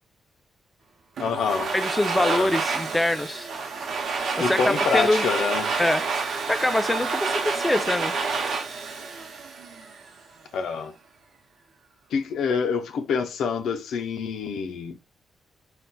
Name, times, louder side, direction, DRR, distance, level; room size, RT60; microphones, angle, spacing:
voice 1, 1.2-1.7 2.2-2.6 4.4-5.8 10.5-10.9 12.1-15.0, left 5 dB, 85° left, 0.4 m, -26 dB
Domestic sounds home sounds, 1.2-10.1, right 4 dB, 75° right, 0.7 m, -28 dB
voice 2, 1.7-3.5 4.4-5.3 5.8-6.0 6.5-8.1, left 1 dB, 10° left, 0.3 m, -24 dB
3.9 x 2.1 x 2.2 m
cardioid pair, 85°, 0 cm